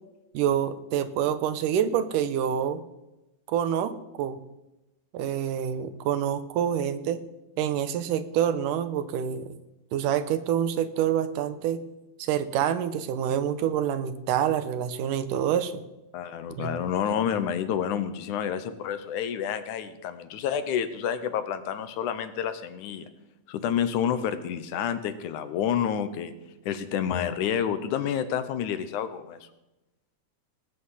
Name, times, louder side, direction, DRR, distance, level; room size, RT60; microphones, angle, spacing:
voice 1, 0.3-2.8 3.5-4.4 5.1-7.2 7.6-9.5 9.9-11.8 12.2-15.8 16.6-16.7, right 9 dB, 85° right, 11 dB, 2.5 m, -27 dB
voice 2, 16.1-23.1 23.5-26.3 26.7-29.4, left 8 dB, 75° left, 11 dB, 2.3 m, -29 dB
18.5 x 8.5 x 5.7 m, 0.97 s
omnidirectional pair, 3.7 m